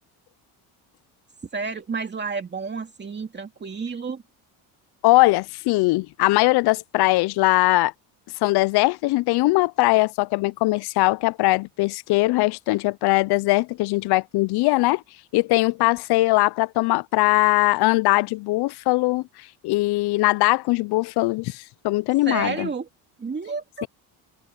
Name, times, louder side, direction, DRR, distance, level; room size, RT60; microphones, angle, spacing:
voice 1, 1.5-4.2 22.3-22.9 23.2-23.9, right 4 dB, 25° right, 2.3 m, -30 dB
voice 2, 5.0-7.9 8.4-15.0 15.3-19.2 19.6-22.7 23.8-23.9, left 21 dB, 65° left, 0.5 m, -20 dB
cardioid pair, 105°, 41 cm